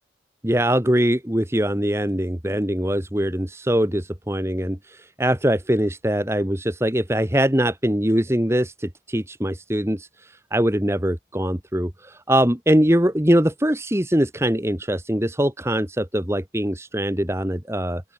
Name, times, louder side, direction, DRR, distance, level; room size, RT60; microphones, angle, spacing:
voice 1, 0.4-18.0, equal, 15° right, 1.8 m, -22 dB
open air
head